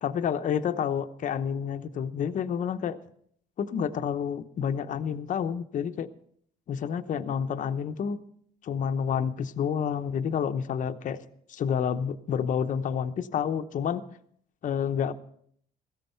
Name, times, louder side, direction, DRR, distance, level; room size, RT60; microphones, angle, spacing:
voice 1, 0.0-3.0 3.6-6.1 6.7-8.2 8.6-11.2 11.5-14.0 14.6-15.1, left 7 dB, 50° left, 8 dB, 0.8 m, -29 dB
16.0 x 13.5 x 4.5 m, 0.64 s
cardioid pair, 110°, 17 cm